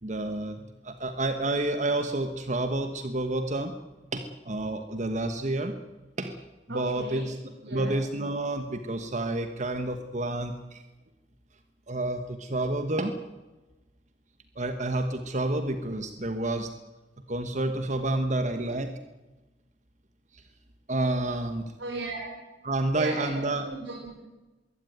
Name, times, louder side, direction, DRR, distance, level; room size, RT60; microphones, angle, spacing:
voice 1, 0.0-3.7 4.1-5.7 6.2-6.4 6.7-7.4 7.7-10.8 11.9-13.1 14.5-16.7 17.3-18.9 20.3-20.4 20.9-21.6 22.6-23.7, right 2 dB, 40° right, 8 dB, 1.3 m, -29 dB
voice 2, 6.7-7.3 7.6-7.9 21.8-22.3 22.9-24.2, right 3 dB, 80° right, -1 dB, 5.3 m, -36 dB
22.5 x 16.0 x 9.3 m, 1.1 s
head